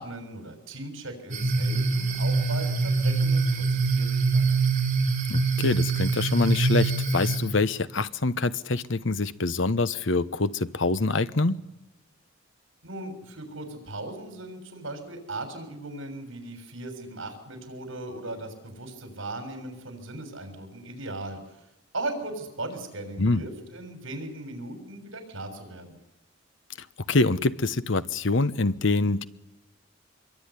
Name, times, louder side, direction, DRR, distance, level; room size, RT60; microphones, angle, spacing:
voice 1, 0.0-4.5 12.8-21.4 21.9-26.0, right 2 dB, 80° right, 6 dB, 6.6 m, -38 dB
sound 1, 1.3-7.4, right 4 dB, 40° right, 5.5 m, -24 dB
voice 2, 5.3-11.6 23.2-23.4 27.1-29.3, left 3 dB, 70° left, 14 dB, 1.0 m, -25 dB
25.5 x 23.0 x 9.9 m, 0.96 s
head